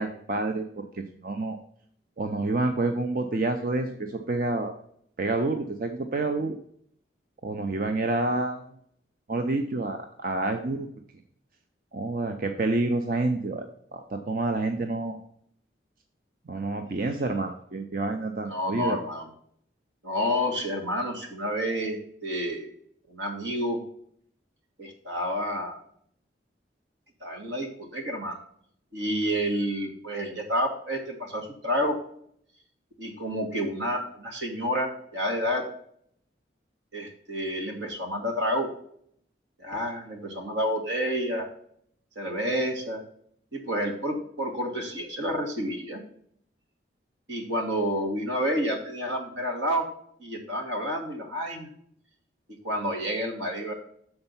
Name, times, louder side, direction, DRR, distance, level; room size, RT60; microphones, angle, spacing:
voice 1, 0.0-1.6 2.2-4.7 5.2-6.6 7.4-8.7 9.3-10.9 11.9-13.7 13.9-15.2 16.5-19.0, right 2 dB, 50° right, 5 dB, 0.5 m, -28 dB
voice 2, 18.5-19.3 20.0-22.7 23.1-23.8 24.8-25.8 27.2-28.4 28.9-32.0 33.0-35.6 36.9-38.7 39.6-41.5 42.1-43.0 43.5-46.0 47.3-49.8 50.2-51.7 52.6-53.7, equal, 80° right, 2 dB, 1.7 m, -29 dB
6.7 x 4.4 x 5.6 m, 0.66 s
head